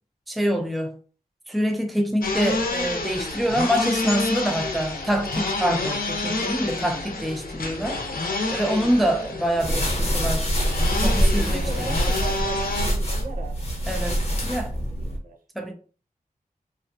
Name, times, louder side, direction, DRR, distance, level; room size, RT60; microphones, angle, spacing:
voice 1, 0.3-0.9 1.5-8.0 8.5-10.5 11.0-11.7 13.9-14.8 15.6-15.7, equal, ahead, 0.4 m, -25 dB
sound 1, 2.2-12.9, left 2 dB, 75° left, 0.6 m, -29 dB
sound 2, 9.6-15.2, equal, 45° left, 0.8 m, -24 dB
voice 2, 11.2-13.6 14.8-15.4, right 2 dB, 70° right, 0.7 m, -38 dB
2.5 x 2.2 x 2.5 m
wide cardioid pair, 65°, 15 cm